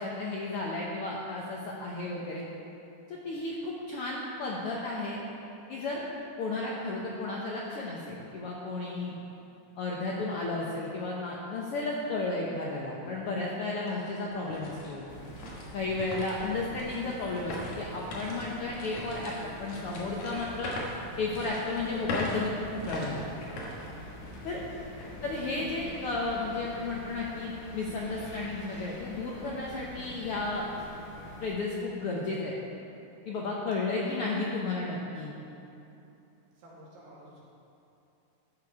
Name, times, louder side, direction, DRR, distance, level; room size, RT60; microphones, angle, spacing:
voice 1, 0.0-2.5 3.1-5.2 5.7-6.0 6.4-9.1 9.8-15.0 15.7-20.7 21.2-23.3 24.4-24.6 25.2-30.7 31.4-32.5 33.2-35.3, left 3 dB, 80° left, -3 dB, 1.2 m, -33 dB
sound 1, 13.1-13.2 13.7-24.6 25.0-25.1 25.7-26.0, left 1 dB, 60° left, 2.6 m, -40 dB
sound 2, 15.1-31.5, left 1 dB, 30° left, 1.6 m, -46 dB
voice 2, 23.5-24.7 25.2-25.3 33.8-33.9 36.5-37.4, right 1 dB, 90° right, -6 dB, 3.9 m, -53 dB
13.0 x 6.8 x 4.8 m, 2.9 s
omnidirectional pair, 3.8 m